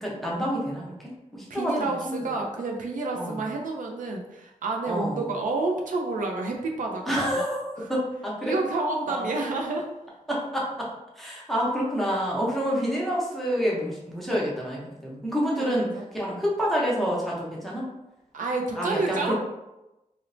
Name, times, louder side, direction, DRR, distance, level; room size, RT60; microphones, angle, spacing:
voice 1, 0.0-2.3 3.2-3.4 4.9-5.2 7.0-8.6 9.1-9.3 10.3-10.9 11.2-17.9 18.8-19.3, equal, ahead, -5 dB, 0.7 m, -28 dB
voice 2, 1.5-7.0 7.8-7.9 8.4-9.9 15.6-16.0 18.3-19.3, right 3 dB, 80° right, 1 dB, 0.4 m, -29 dB
3.0 x 2.0 x 2.5 m, 0.96 s
wide cardioid pair, 125°, 13 cm